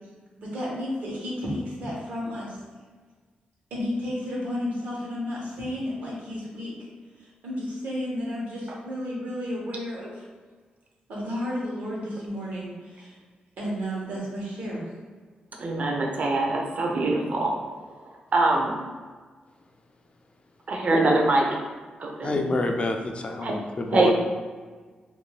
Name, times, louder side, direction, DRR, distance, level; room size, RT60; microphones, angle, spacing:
voice 1, 0.4-2.6 3.7-6.8 7.2-10.2 11.1-13.2 13.6-14.9, left 1 dB, 85° right, -5 dB, 1.0 m, -32 dB
voice 2, 15.6-17.6 18.3-18.7 20.7-21.5 22.0-22.4 23.4-23.6 23.9-24.1, right 2 dB, 55° right, 0 dB, 0.6 m, -23 dB
voice 3, 22.2-24.1, left 2 dB, 40° left, 4 dB, 0.3 m, -28 dB
2.6 x 2.2 x 3.2 m, 1.4 s
cardioid pair, 75°, 3 cm